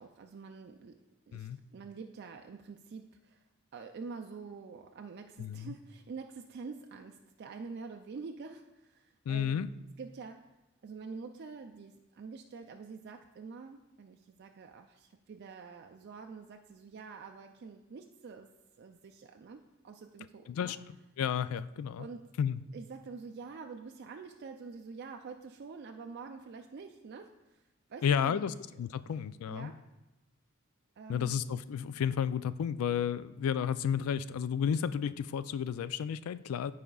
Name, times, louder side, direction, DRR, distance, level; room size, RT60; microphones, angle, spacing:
voice 1, 0.0-3.4 3.7-9.6 10.0-10.5 10.8-18.5 18.8-20.7 22.0-22.2 22.7-28.5 29.5-29.8 31.0-31.4, right 4 dB, 50° right, 4 dB, 0.4 m, -46 dB
voice 2, 5.4-5.7 9.3-9.7 20.5-20.8 21.2-22.1 22.4-22.6 28.0-29.7 31.1-36.7, left 8 dB, 85° left, 16 dB, 0.3 m, -32 dB
14.5 x 4.9 x 2.3 m, 0.99 s
head